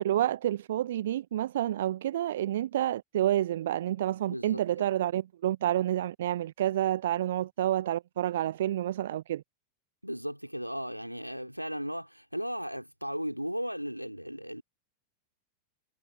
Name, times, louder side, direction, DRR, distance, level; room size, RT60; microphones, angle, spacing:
voice 1, 0.0-9.4, right 12 dB, 60° right, 0.9 m, -29 dB
voice 2, 4.3-4.9 10.0-14.6, equal, 90° right, 4.0 m, -36 dB
figure-of-eight pair, 90°, 0 cm